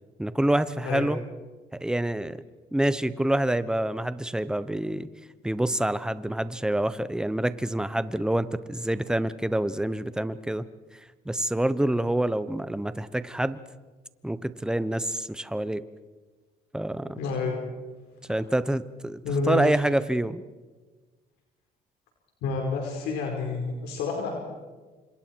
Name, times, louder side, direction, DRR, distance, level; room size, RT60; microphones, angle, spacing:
voice 1, 0.2-1.2 1.8-2.4 2.7-5.1 5.4-10.6 11.2-13.6 14.2-15.8 16.7-17.2 18.3-19.2 19.5-20.4, right 1 dB, 5° right, 14 dB, 1.0 m, -27 dB
voice 2, 17.2-17.6 19.2-19.6 22.4-24.3, left 3 dB, 90° left, 1 dB, 4.7 m, -29 dB
29.0 x 26.0 x 4.7 m, 1.3 s
cardioid pair, 110°, 17 cm